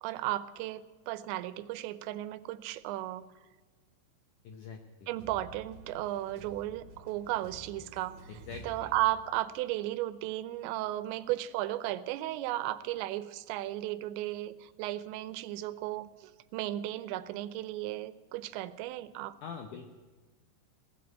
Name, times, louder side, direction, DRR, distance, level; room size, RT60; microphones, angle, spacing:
voice 1, 0.0-3.2 5.1-8.2 8.6-19.4, right 15 dB, 90° right, 15 dB, 3.0 m, -35 dB
voice 2, 4.4-5.1 8.3-8.9 19.4-20.0, left 5 dB, 80° left, 5 dB, 1.8 m, -44 dB
sound 1, 5.2-9.7, right 1 dB, 65° right, 3.1 m, -51 dB
17.5 x 7.8 x 9.2 m, 1.4 s
omnidirectional pair, 5.0 m